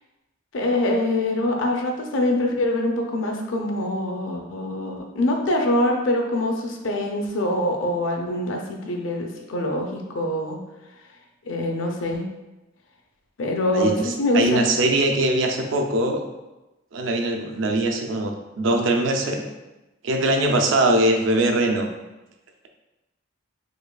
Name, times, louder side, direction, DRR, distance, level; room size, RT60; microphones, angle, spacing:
voice 1, 0.5-10.6 11.5-12.3 13.4-14.7, left 1 dB, 90° left, 2 dB, 0.6 m, -24 dB
voice 2, 13.7-16.2 16.9-19.4 20.0-21.9, right 1 dB, 75° right, 4 dB, 0.5 m, -21 dB
4.9 x 2.4 x 2.2 m, 1.0 s
head